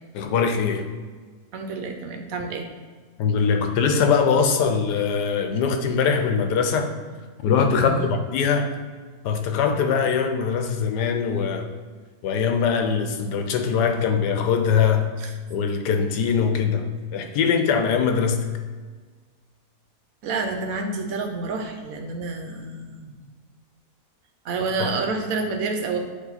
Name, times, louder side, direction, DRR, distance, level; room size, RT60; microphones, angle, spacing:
voice 1, 0.1-0.9 3.2-6.9 7.4-8.7 9.2-11.7 12.2-15.1 15.5-16.9 17.1-18.5 24.8-24.9, left 6 dB, 85° left, 6 dB, 1.3 m, -22 dB
voice 2, 1.5-2.7 7.7-8.1 15.2-15.3 20.2-23.2 24.4-26.0, right 3 dB, 65° right, 4 dB, 1.1 m, -29 dB
8.2 x 3.1 x 4.0 m, 1.5 s
omnidirectional pair, 1.7 m